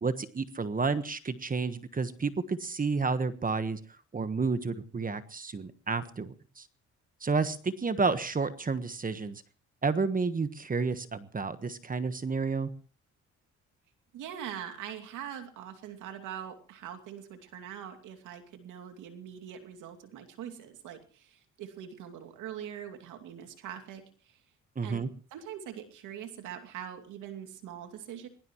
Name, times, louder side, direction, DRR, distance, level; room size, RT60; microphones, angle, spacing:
voice 1, 0.0-3.8 4.1-6.7 7.2-9.4 9.8-12.7 24.8-25.1, right 4 dB, 30° right, 12 dB, 1.3 m, -30 dB
voice 2, 14.1-24.4 24.8-25.0 25.3-28.3, right 9 dB, 90° right, 6 dB, 2.7 m, -43 dB
24.0 x 18.5 x 3.1 m, 0.39 s
cardioid pair, 90°, 30 cm